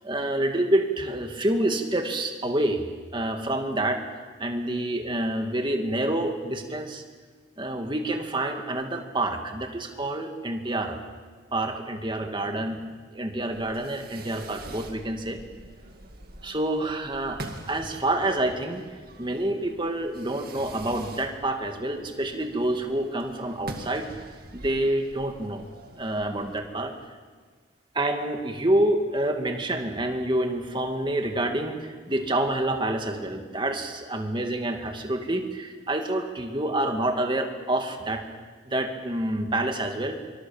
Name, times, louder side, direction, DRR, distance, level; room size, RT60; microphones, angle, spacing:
voice 1, 0.0-2.8 3.1-4.0 4.4-7.0 7.6-11.0 11.5-12.8 13.1-15.4 16.4-18.8 19.2-24.1 24.5-25.7 26.0-26.9 27.9-38.2 38.7-40.2, right 1 dB, 25° right, 4 dB, 2.2 m, -27 dB
Fireworks, 13.5-26.6, right 2 dB, 50° right, 2.2 m, -44 dB
26.0 x 24.5 x 7.3 m, 1.5 s
head